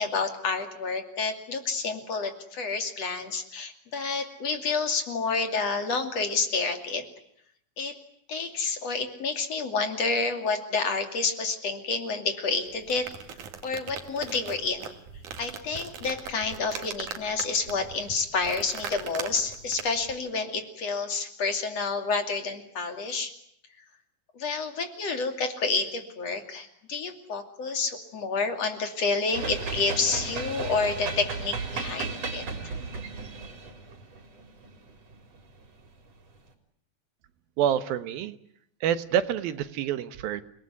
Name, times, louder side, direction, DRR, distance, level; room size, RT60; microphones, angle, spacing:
voice 1, 0.0-7.0 7.8-7.9 8.3-13.1 13.6-14.9 15.4-23.3 24.3-32.5, left 4 dB, 50° left, 6 dB, 3.5 m, -29 dB
sound 1, 12.7-20.1, right 7 dB, 60° right, 3.4 m, -40 dB
sound 2, 29.3-35.7, right 4 dB, 45° right, 4.7 m, -35 dB
voice 2, 37.6-38.4 38.8-40.4, right 9 dB, 85° right, 12 dB, 3.1 m, -27 dB
29.0 x 20.0 x 9.7 m, 0.70 s
omnidirectional pair, 4.1 m